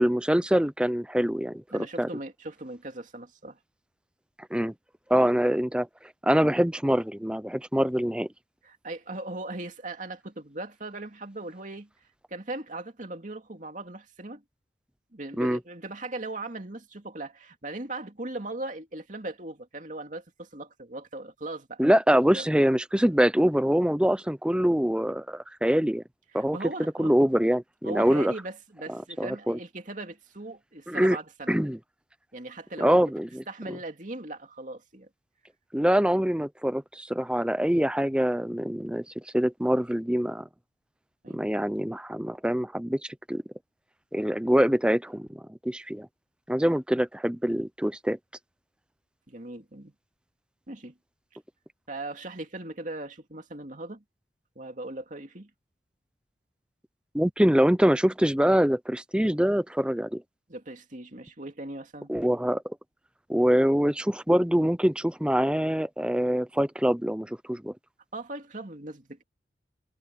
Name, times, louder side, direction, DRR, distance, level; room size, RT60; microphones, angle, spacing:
voice 1, 0.0-2.1 4.5-4.7 5.1-5.9 6.2-8.3 15.4-15.6 21.8-26.0 26.3-26.6 27.0-28.3 28.9-29.6 30.9-31.2 31.5-31.8 32.8-33.8 35.7-40.5 41.3-43.4 44.1-46.1 46.5-48.2 57.1-60.2 62.1-62.8 63.3-67.7, equal, 5° right, 0.6 m, -24 dB
voice 2, 1.7-3.6 5.1-5.3 8.6-11.9 12.3-14.4 15.1-21.8 22.3-22.5 26.3-27.2 27.8-31.5 32.3-32.9 33.5-35.1 41.2-41.4 46.6-46.7 49.3-49.9 50.7-50.9 51.9-54.0 54.6-55.5 60.5-62.1 68.1-69.2, right 2 dB, 45° right, 2.5 m, -39 dB
head